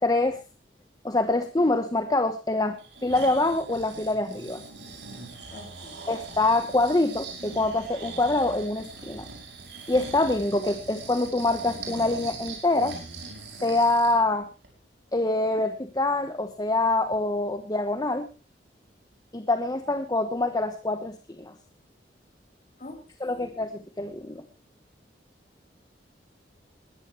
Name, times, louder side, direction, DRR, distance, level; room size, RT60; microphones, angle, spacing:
voice 1, 0.0-0.4 1.0-4.6 6.1-9.3 9.9-13.0 13.6-14.5 15.1-18.3 19.3-21.5 23.2-24.4, left 2 dB, 20° left, 9 dB, 0.9 m, -25 dB
Breathing, 2.8-14.2 14.6-14.7, right 3 dB, 75° right, 5.2 m, -41 dB
voice 2, 5.5-6.1 22.8-23.5, left 1 dB, 40° left, 4 dB, 4.1 m, -45 dB
21.0 x 13.5 x 3.1 m, 0.30 s
head